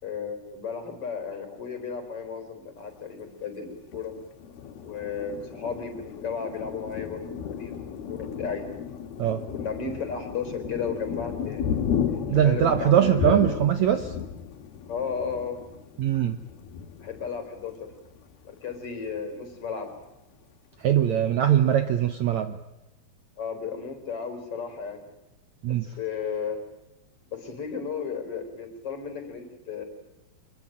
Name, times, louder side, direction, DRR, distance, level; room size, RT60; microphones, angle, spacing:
voice 1, 0.0-4.1 4.8-8.6 9.5-11.7 12.3-13.5 14.9-15.6 17.0-17.7 18.4-19.9 23.4-25.0 25.8-26.6 27.3-29.8, left 6 dB, 40° left, 7 dB, 5.0 m, -34 dB
Thunder, 3.9-18.2 18.7-18.9 19.2-19.8, left 7 dB, 80° left, 3.8 m, -34 dB
voice 2, 12.3-14.2 16.0-16.4 20.8-22.6 25.6-25.9, right 10 dB, 65° right, 9 dB, 2.0 m, -22 dB
25.0 x 22.0 x 8.9 m, 0.95 s
omnidirectional pair, 4.3 m